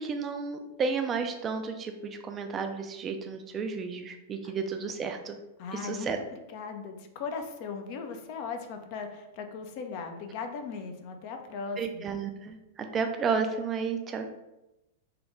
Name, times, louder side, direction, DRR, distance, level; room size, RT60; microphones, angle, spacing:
voice 1, 0.0-5.4 5.7-6.2 11.8-14.3, right 5 dB, 25° right, 5 dB, 0.3 m, -32 dB
voice 2, 5.6-12.1, left 5 dB, 45° left, 5 dB, 0.4 m, -38 dB
3.2 x 2.3 x 3.1 m, 0.95 s
figure-of-eight pair, 100°, 0 cm